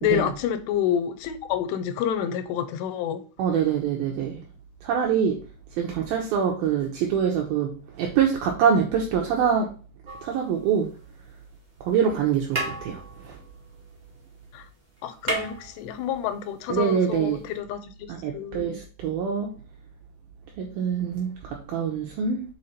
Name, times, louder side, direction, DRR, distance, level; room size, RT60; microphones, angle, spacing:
voice 1, 0.0-3.2 14.5-14.7 15.0-18.7, left 9 dB, 80° left, 2.8 m, -28 dB
voice 2, 3.4-4.4 4.8-5.4 5.8-9.7 10.2-10.9 11.8-13.4 16.7-17.4 18.1-19.6 20.6-22.4, right 7 dB, 75° right, 2.4 m, -25 dB
sound 1, 10.0-11.2 12.1-12.2 12.5-14.4 14.7-14.8 15.0-16.4 17.5-17.6, right 2 dB, 20° right, 1.0 m, -34 dB
6.5 x 4.8 x 4.3 m
omnidirectional pair, 5.0 m